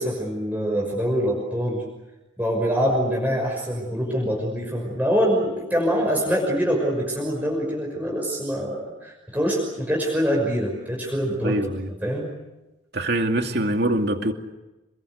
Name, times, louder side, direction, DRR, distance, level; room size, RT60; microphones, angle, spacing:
voice 1, 0.0-1.8 2.4-11.6 12.0-12.3, equal, 10° right, -2 dB, 5.9 m, -24 dB
voice 2, 11.4-11.9 12.9-14.3, right 1 dB, 55° right, 4 dB, 2.5 m, -23 dB
28.0 x 22.5 x 8.1 m, 1.0 s
head